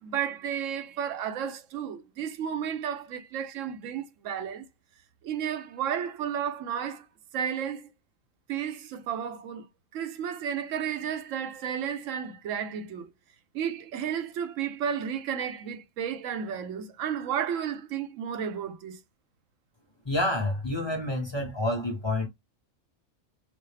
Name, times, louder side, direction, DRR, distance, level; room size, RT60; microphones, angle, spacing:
voice 1, 0.0-4.7 5.2-7.1 7.3-7.9 8.5-9.7 9.9-13.1 13.5-19.0, right 8 dB, 80° right, 1.0 m, -32 dB
voice 2, 20.0-22.3, left 1 dB, 25° left, 0.7 m, -28 dB
4.1 x 2.1 x 3.2 m
omnidirectional pair, 1.3 m